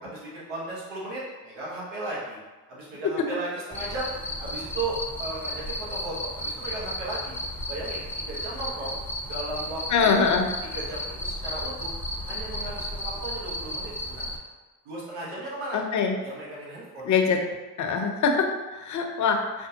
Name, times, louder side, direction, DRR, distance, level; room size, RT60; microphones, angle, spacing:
voice 1, 0.0-2.4 2.7-4.1 4.4-7.3 7.7-8.9 9.3-10.2 10.7-11.9 12.2-14.4 14.8-15.8 16.2-17.1, right 2 dB, 75° right, -5 dB, 1.2 m, -35 dB
Cricket, 3.7-14.4, left 1 dB, 5° left, 0.6 m, -34 dB
voice 2, 9.9-10.5 15.7-16.2 17.0-17.4 17.8-19.7, left 5 dB, 45° left, 3 dB, 0.7 m, -23 dB
5.1 x 2.1 x 2.8 m, 1.2 s
hypercardioid pair, 70°, 43 cm